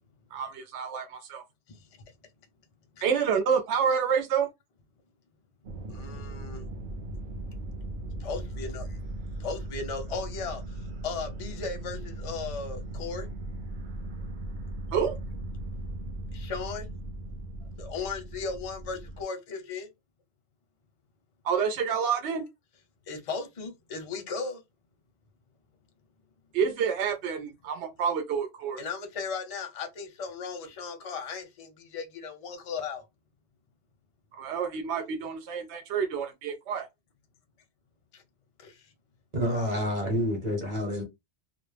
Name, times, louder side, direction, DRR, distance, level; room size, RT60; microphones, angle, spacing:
voice 1, 0.3-1.4 3.0-4.5 14.9-15.2 21.4-22.4 26.5-28.8 34.3-36.9, right 7 dB, 80° right, 0.9 m, -28 dB
sound 1, 5.6-19.2, right 1 dB, 60° right, 0.6 m, -38 dB
voice 2, 5.9-6.7 8.2-8.8 9.4-10.6 11.0-13.3 16.3-16.9 17.8-19.9 23.1-24.6 28.8-33.0 38.1-38.2 38.6-38.8 39.6-39.7, left 4 dB, 45° left, 0.5 m, -36 dB
voice 3, 39.3-41.0, equal, 40° right, 1.0 m, -28 dB
2.2 x 2.0 x 3.2 m
omnidirectional pair, 1.1 m